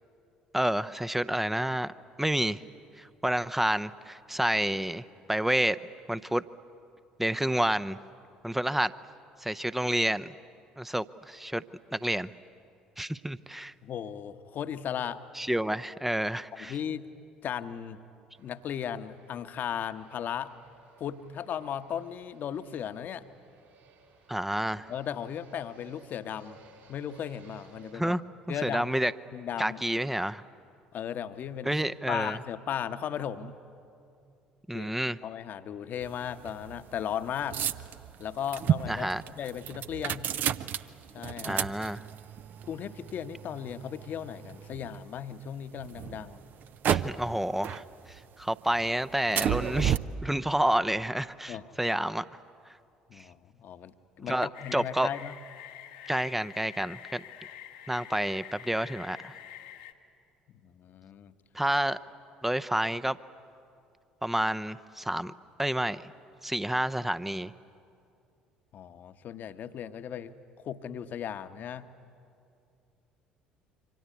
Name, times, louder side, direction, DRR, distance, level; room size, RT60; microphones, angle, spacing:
voice 1, 0.5-1.9 2.2-2.6 3.0-5.0 5.3-5.8 6.1-6.4 7.2-8.0 8.4-8.9 9.4-10.3 10.8-11.6 11.9-12.3 13.0-13.7 15.4-16.7 24.3-24.9 27.9-28.2 28.6-29.1 29.6-30.4 31.6-32.4 34.7-35.2 38.9-39.2 41.4-42.0 46.9-50.0 50.2-52.2 53.2-53.3 54.2-55.1 56.1-57.2 57.9-59.3 61.5-62.0 62.4-63.2 64.2-65.3 65.6-66.0 66.4-67.5, right 1 dB, 5° right, 14 dB, 0.7 m, -29 dB
voice 2, 13.8-15.2 16.5-17.1 17.4-18.0 18.4-20.5 21.0-23.3 24.9-26.6 26.9-28.1 28.5-28.9 29.3-29.8 30.9-31.7 32.1-33.6 34.7-34.9 35.2-37.6 38.2-40.3 41.1-41.6 42.7-46.4 51.5-51.7 53.1-55.4 60.5-61.3 68.7-71.9, left 9 dB, 45° left, 11 dB, 1.0 m, -36 dB
Fixed-wing aircraft airplane, 18.3-27.9, right 4 dB, 65° right, 5.7 m, -59 dB
sound 1, 36.0-45.2 45.7-47.4 47.6-48.4 48.7-50.0, right 9 dB, 45° right, 0.7 m, -32 dB
sound 2, 54.5-59.9, left 11 dB, 70° left, 1.1 m, -47 dB
27.5 x 24.5 x 8.4 m, 2.5 s
figure-of-eight pair, 55°, 4 cm